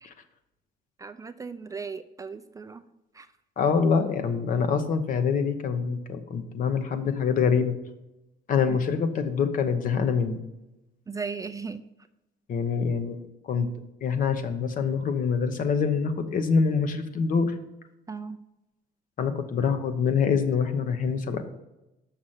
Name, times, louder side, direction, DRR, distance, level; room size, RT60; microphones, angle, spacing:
voice 1, 1.0-2.8 3.2-3.3 8.7-8.8 11.1-11.8 18.1-18.4, right 5 dB, 20° right, 8 dB, 0.4 m, -36 dB
voice 2, 3.6-7.7 8.5-10.4 12.5-13.2 13.5-13.7 14.0-17.5 19.2-21.4, left 6 dB, 50° left, 8 dB, 0.9 m, -25 dB
6.5 x 5.8 x 5.7 m, 0.94 s
cardioid pair, 110°, 17 cm